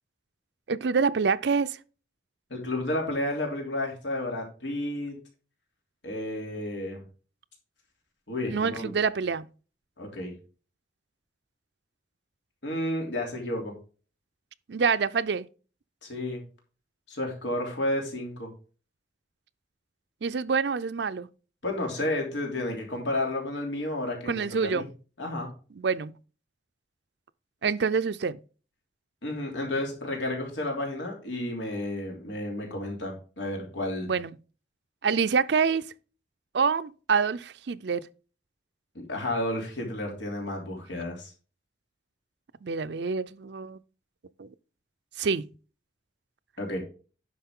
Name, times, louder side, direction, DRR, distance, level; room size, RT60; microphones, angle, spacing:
voice 1, 0.7-1.8 8.5-9.5 14.7-15.5 20.2-21.3 24.3-24.9 25.8-26.1 27.6-28.4 34.1-34.4 35.0-35.9 36.5-38.1 42.6-43.8 44.4-44.5 45.2-45.5, right 5 dB, 70° right, 0.5 m, -26 dB
voice 2, 2.5-5.2 6.0-7.0 8.3-9.0 10.0-10.4 12.6-13.7 16.0-16.4 17.1-18.5 21.6-24.8 25.2-25.5 29.2-34.1 38.9-41.3 46.6-46.8, left 1 dB, 85° left, 3.1 m, -31 dB
10.0 x 6.2 x 3.7 m
head